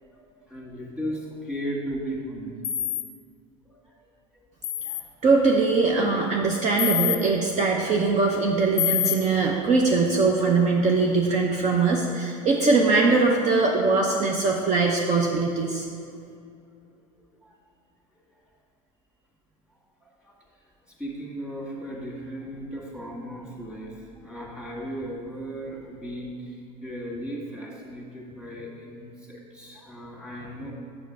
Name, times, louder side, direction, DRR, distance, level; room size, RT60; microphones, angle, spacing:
voice 1, 0.0-2.5 3.7-3.9 4.3-4.4 4.8-5.1 9.2-9.3 17.4-17.5 19.7-20.3 20.9-30.7, equal, 5° right, -3 dB, 2.0 m, -36 dB
sound 1, 2.6-3.0 4.6-5.0 6.8-7.2 8.8-9.2, left 11 dB, 40° left, 0.5 m, -25 dB
voice 2, 5.2-15.8, right 3 dB, 45° right, 0 dB, 0.8 m, -21 dB
7.2 x 6.3 x 4.8 m, 2.4 s
supercardioid pair, 105°, 17 cm